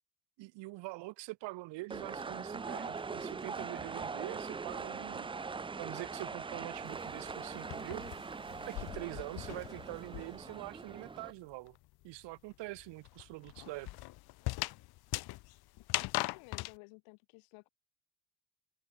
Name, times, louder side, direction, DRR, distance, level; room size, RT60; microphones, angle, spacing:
voice 1, 0.4-5.3 5.8-8.0 8.7-11.8 12.0-13.9, right 21 dB, 65° right, 1.0 m, -44 dB
sound 1, 1.9-11.3, right 4 dB, 10° right, 0.4 m, -42 dB
sound 2, 6.9-10.6 10.9-16.7, left 19 dB, 55° left, 0.6 m, -40 dB
voice 2, 16.2-17.7, left 33 dB, 85° left, 4.9 m, -55 dB
cardioid pair, 115°, 46 cm